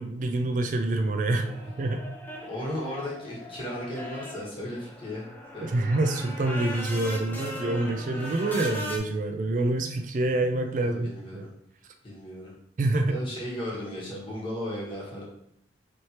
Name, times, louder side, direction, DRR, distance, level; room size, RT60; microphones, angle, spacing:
voice 1, 0.0-1.5 1.8-2.1 5.6-11.1 11.3-11.5 12.8-13.2, right 2 dB, 45° right, 4 dB, 0.3 m, -26 dB
sound 1, 1.4-9.0, equal, 10° left, 0.6 m, -39 dB
voice 2, 2.4-5.2 5.5-5.9 10.8-11.5 12.0-12.5 13.1-15.2, left 1 dB, 30° left, -6 dB, 1.2 m, -35 dB
4.2 x 3.2 x 2.9 m, 0.73 s
head